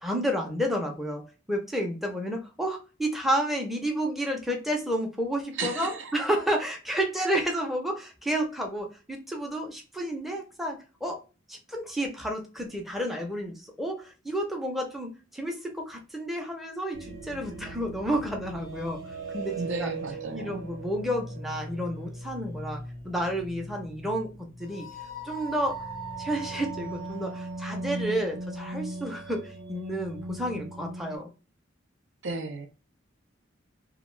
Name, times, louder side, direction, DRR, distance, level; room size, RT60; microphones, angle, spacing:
voice 1, 0.0-11.2 11.5-19.0 19.3-19.9 20.3-24.3 24.6-24.9 25.2-25.8 26.2-31.3, equal, ahead, 1 dB, 0.5 m, -31 dB
voice 2, 5.5-6.3 19.6-20.7 32.2-32.7, right 3 dB, 65° right, 5 dB, 0.5 m, -34 dB
sound 1, 16.9-31.2, right 2 dB, 80° right, 1.0 m, -39 dB
2.4 x 2.3 x 3.1 m, 0.33 s
head